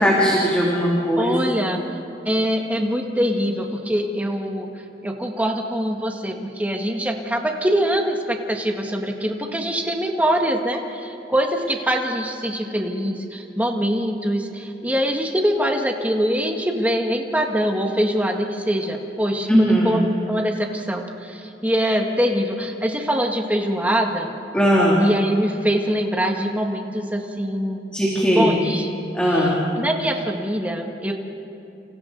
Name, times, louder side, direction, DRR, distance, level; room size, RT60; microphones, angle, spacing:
voice 1, 0.0-1.4 19.5-19.9 24.5-25.1 27.9-28.6 29.1-29.6, equal, 5° left, -6 dB, 2.9 m, -18 dB
voice 2, 1.2-1.8 2.2-4.7 5.0-24.3 25.0-27.9 28.3-28.9 29.3-29.5 29.8-31.1, equal, 10° right, 2 dB, 1.6 m, -23 dB
29.0 x 28.0 x 4.0 m, 2.7 s
head